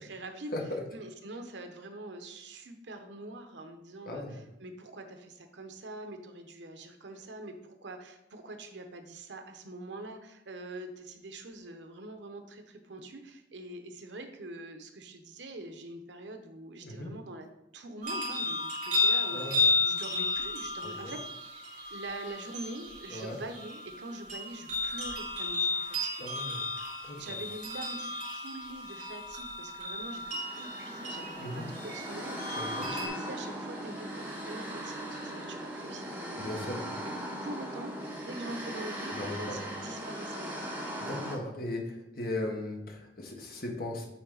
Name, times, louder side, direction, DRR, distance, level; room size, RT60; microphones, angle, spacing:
voice 1, 0.0-0.6 0.9-17.5 17.7-21.6 21.9-26.2 27.2-36.5 37.0-37.1 37.4-40.7, right 2 dB, 85° right, 6 dB, 0.9 m, -44 dB
sound 1, 18.0-33.1, left 3 dB, 45° right, 2.6 m, -33 dB
voice 2, 19.3-19.6 20.8-21.1 23.1-23.4 26.2-26.6 27.1-27.2 31.4-31.7 32.5-32.9 36.4-36.8 39.1-39.6 41.0-44.1, left 1 dB, 55° left, 0 dB, 1.4 m, -37 dB
sound 2, 30.1-41.3, equal, 10° right, 1.5 m, -39 dB
8.5 x 4.1 x 4.0 m, 0.87 s
head